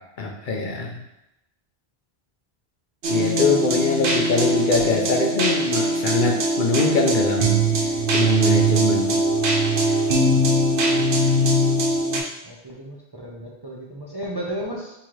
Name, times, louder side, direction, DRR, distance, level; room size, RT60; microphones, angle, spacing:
voice 1, 0.2-1.0 3.1-7.6 8.1-9.2, left 3 dB, 55° left, 0 dB, 0.7 m, -23 dB
sound 1, 3.0-12.2, right 1 dB, 60° right, 0.9 m, -21 dB
voice 2, 12.4-14.9, right 1 dB, 30° right, -4 dB, 0.5 m, -35 dB
3.7 x 3.0 x 4.6 m, 0.90 s
omnidirectional pair, 1.1 m